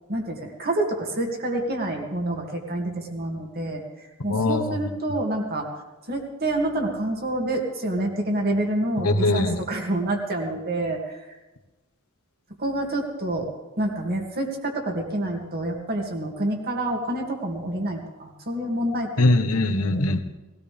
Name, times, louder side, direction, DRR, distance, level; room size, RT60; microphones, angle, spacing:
voice 1, 0.1-3.8 4.2-5.7 6.1-11.2 12.6-13.5 13.8-19.3 19.8-20.0, right 1 dB, 45° right, 1 dB, 2.5 m, -27 dB
voice 2, 4.3-4.8 9.0-9.6 19.2-20.2, left 2 dB, 75° left, 8 dB, 1.3 m, -21 dB
19.5 x 17.5 x 3.5 m, 1.1 s
head